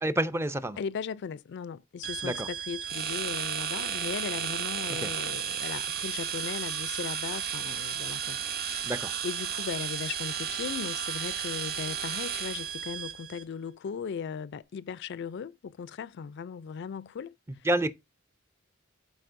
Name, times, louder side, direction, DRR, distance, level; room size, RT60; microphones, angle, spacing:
voice 1, 0.0-0.8 2.2-2.5 5.0-5.1 8.8-9.1 17.6-17.9, right 1 dB, 10° right, 0.4 m, -28 dB
voice 2, 0.8-8.9 9.2-17.3, left 6 dB, 55° left, 0.3 m, -37 dB
sound 1, 2.0-13.4, right 10 dB, 75° right, 2.1 m, -38 dB
sound 2, 2.8-13.0, right 8 dB, 45° right, 0.8 m, -35 dB
12.0 x 4.3 x 2.5 m
head